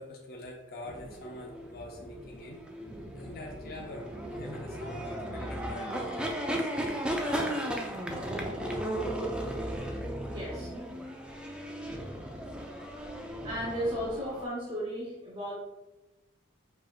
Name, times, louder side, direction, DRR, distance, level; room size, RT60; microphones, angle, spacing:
voice 1, 0.0-2.6 3.1-7.5, left 1 dB, 45° left, -1 dB, 0.6 m, -44 dB
sound 1, 0.8-14.5, right 1 dB, 5° right, 0.3 m, -36 dB
voice 2, 10.3-10.7 13.0-13.1 13.4-15.5, equal, 25° right, -7 dB, 1.0 m, -35 dB
4.7 x 4.3 x 2.4 m, 1.0 s
head